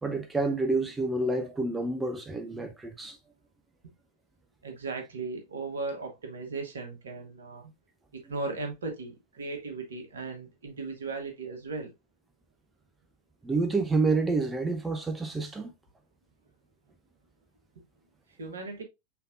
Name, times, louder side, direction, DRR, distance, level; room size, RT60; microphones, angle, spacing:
voice 1, 0.0-3.2 13.4-15.7, right 3 dB, 10° right, 0.6 m, -28 dB
voice 2, 4.6-7.7 8.1-11.9 18.4-18.8, right 3 dB, 65° right, 1.4 m, -37 dB
5.7 x 3.5 x 2.5 m
figure-of-eight pair, 90°, 0 cm